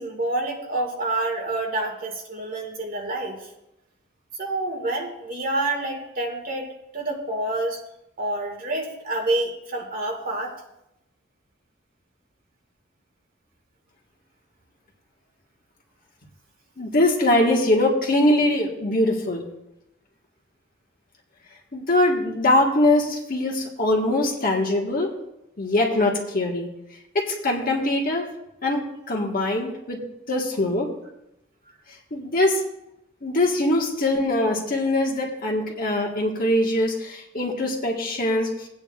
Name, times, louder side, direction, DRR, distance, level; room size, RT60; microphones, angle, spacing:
voice 1, 0.0-3.5 4.4-7.8 8.2-10.5, right 2 dB, 50° right, 1 dB, 2.0 m, -28 dB
voice 2, 16.8-19.4 21.7-25.1 25.6-26.7 27.1-28.3 28.6-30.0 30.3-30.9 32.1-32.6 33.2-38.7, left 1 dB, 45° left, 1 dB, 1.5 m, -22 dB
18.0 x 8.9 x 2.4 m, 0.87 s
head